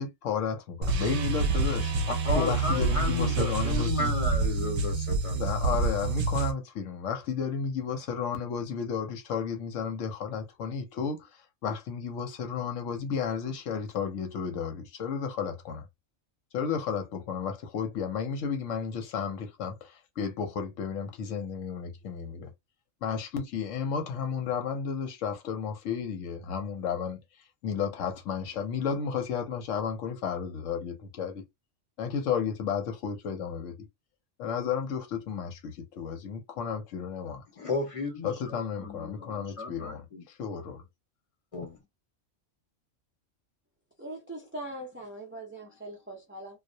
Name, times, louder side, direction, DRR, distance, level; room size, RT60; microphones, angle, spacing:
voice 1, 0.0-1.9 2.3-4.1 5.4-15.9 16.5-22.5 23.0-27.2 27.6-31.4 32.0-33.9 34.4-37.4 38.2-40.8, left 6 dB, 75° left, 1.0 m, -33 dB
sound 1, 0.8-6.5, right 3 dB, 70° right, 0.8 m, -27 dB
voice 2, 2.1-5.4 37.6-40.2 41.5-41.8, left 3 dB, 30° left, 0.9 m, -33 dB
voice 3, 44.0-46.6, right 1 dB, 20° right, 0.3 m, -41 dB
2.3 x 2.0 x 2.6 m
omnidirectional pair, 1.3 m